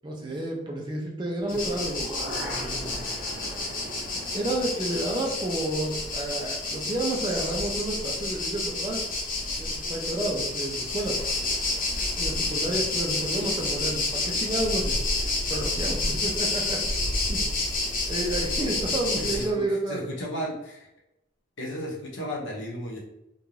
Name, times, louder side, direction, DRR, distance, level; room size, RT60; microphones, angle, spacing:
voice 1, 0.0-2.1 2.4-3.0 4.3-9.0 9.6-11.2 12.2-15.0 15.5-16.8 17.3-17.5 18.1-20.0, right 1 dB, 25° right, -1 dB, 0.4 m, -30 dB
sound 1, 1.4-7.4 7.8-7.9, equal, 5° right, 0.8 m, -41 dB
sound 2, 1.5-19.4, left 2 dB, 45° left, 0.6 m, -29 dB
voice 2, 19.2-20.9 21.6-23.0, equal, 75° left, -2 dB, 0.8 m, -34 dB
2.5 x 2.2 x 3.1 m, 0.90 s
head